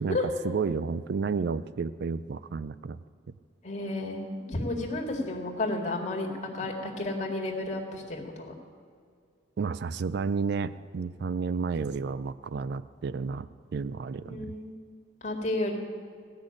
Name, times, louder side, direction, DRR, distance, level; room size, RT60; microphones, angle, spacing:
voice 1, 0.4-3.0 9.6-13.5 13.7-14.5, right 5 dB, 60° right, 15 dB, 0.4 m, -31 dB
voice 2, 3.6-8.5 14.3-14.7 15.2-15.7, left 2 dB, 40° left, 0 dB, 2.1 m, -32 dB
16.0 x 6.4 x 9.8 m, 2.2 s
head